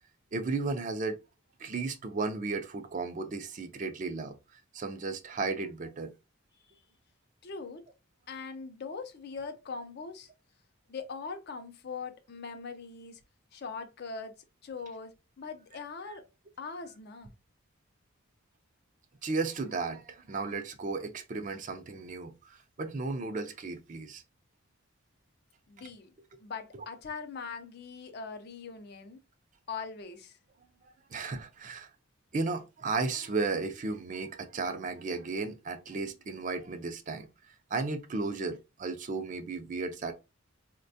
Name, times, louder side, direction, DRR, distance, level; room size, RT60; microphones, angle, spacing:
voice 1, 0.3-1.2 1.6-6.1 19.2-24.2 26.7-26.8 31.1-31.9 32.3-37.3 37.7-40.1, right 3 dB, 35° right, 0.4 m, -34 dB
voice 2, 7.4-7.8 8.3-10.3 10.9-13.2 13.5-14.4 14.6-16.2 16.6-17.3 25.7-26.1 26.4-29.2 29.7-30.4, left 5 dB, 50° left, 0.5 m, -41 dB
4.1 x 2.2 x 2.6 m
head